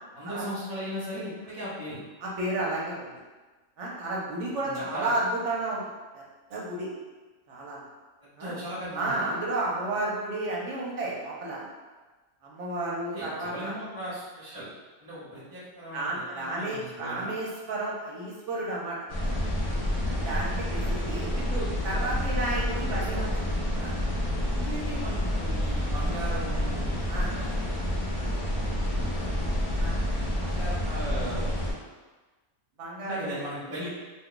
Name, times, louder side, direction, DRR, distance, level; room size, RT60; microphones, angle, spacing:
voice 1, 0.1-2.0 4.5-5.1 8.2-9.4 13.1-14.7 15.0-16.1 16.3-17.3 21.3-21.7 22.7-23.5 24.5-27.0 27.3-27.6 28.9-29.6 30.4-31.5 33.0-33.9, equal, 20° right, -13 dB, 0.8 m, -38 dB
voice 2, 2.2-3.1 3.8-5.8 6.1-6.2 6.5-6.9 7.5-7.8 8.4-8.5 8.9-11.7 12.4-13.7 15.9-19.0 20.1-21.3 21.8-23.3 23.8-24.0 27.1-27.3 29.8-30.0 32.8-33.4, right 2 dB, 65° right, -4 dB, 1.0 m, -32 dB
sound 1, 19.1-31.7, left 1 dB, 45° left, 0.4 m, -29 dB
2.6 x 2.3 x 3.7 m, 1.3 s
omnidirectional pair, 1.4 m